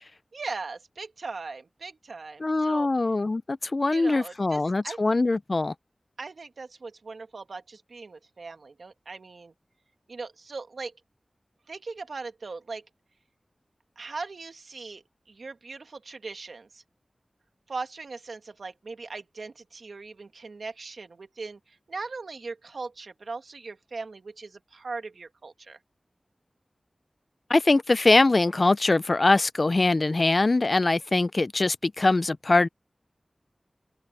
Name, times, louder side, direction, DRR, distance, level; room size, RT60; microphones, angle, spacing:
voice 1, 0.3-2.9 3.9-5.0 6.2-9.5 10.1-10.9 11.7-12.9 13.9-16.8 17.7-25.8, right 4 dB, 90° right, 1.8 m, -39 dB
voice 2, 2.4-5.7 27.5-32.7, left 2 dB, 45° left, 0.5 m, -22 dB
wide cardioid pair, 85°, 0 cm